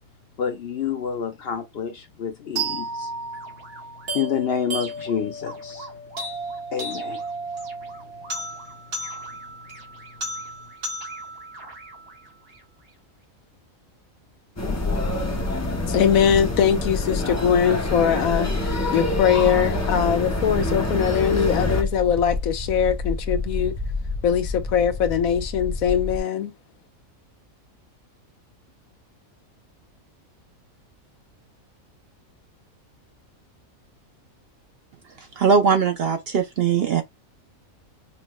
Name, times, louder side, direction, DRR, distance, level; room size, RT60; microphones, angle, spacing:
voice 1, 0.4-3.1 4.1-5.9 6.7-7.2 9.0-9.1, left 7 dB, 60° left, 0.7 m, -28 dB
sound 1, 2.5-12.6, right 2 dB, 90° right, 2.3 m, -34 dB
sound 2, 14.6-21.8, left 2 dB, 20° left, 0.4 m, -27 dB
sound 3, 14.6-26.2, left 2 dB, 15° right, 0.7 m, -30 dB
voice 2, 15.9-23.7 24.2-26.5, left 8 dB, 80° left, 1.1 m, -21 dB
voice 3, 35.2-37.0, right 6 dB, 60° right, 0.6 m, -20 dB
5.3 x 2.1 x 3.0 m
omnidirectional pair, 1.4 m